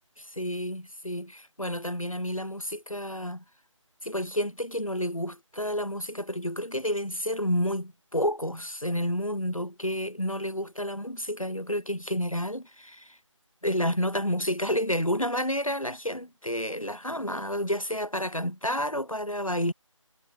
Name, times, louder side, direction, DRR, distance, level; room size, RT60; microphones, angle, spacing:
voice 1, 0.2-3.4 4.0-13.2 13.6-19.7, equal, 90° left, 5.1 m, -30 dB
figure-of-eight pair, 160°, 17 cm